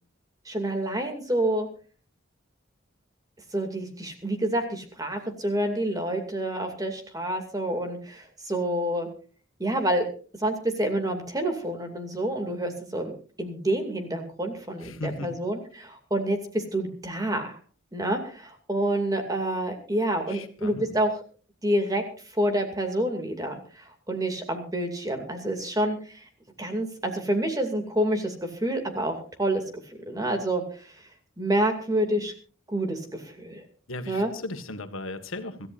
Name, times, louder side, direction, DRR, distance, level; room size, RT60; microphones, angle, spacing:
voice 1, 0.5-1.7 3.5-9.1 9.6-10.1 10.4-13.1 13.4-17.6 17.9-21.1 21.6-22.0 22.3-26.2 26.6-31.0 31.4-32.3 32.7-33.6 34.1-34.3, right 1 dB, 20° right, 5 dB, 2.5 m, -28 dB
voice 2, 14.8-15.3 20.3-21.0 33.9-35.7, left 2 dB, 85° left, 7 dB, 1.8 m, -36 dB
26.0 x 14.0 x 2.6 m, 0.39 s
head